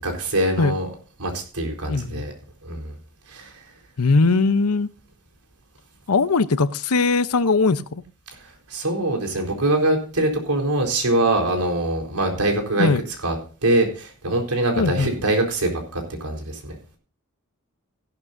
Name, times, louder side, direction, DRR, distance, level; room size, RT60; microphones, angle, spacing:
voice 1, 0.0-0.9 1.2-2.3 2.6-2.9 3.3-3.6 8.4-12.9 13.2-13.4 13.6-16.7, right 1 dB, 90° right, 2 dB, 4.2 m, -23 dB
voice 2, 1.9-2.2 4.0-4.9 6.1-8.0 12.8-13.0 14.8-15.1, left 3 dB, 85° left, 14 dB, 0.8 m, -20 dB
16.0 x 11.5 x 2.6 m, 0.38 s
head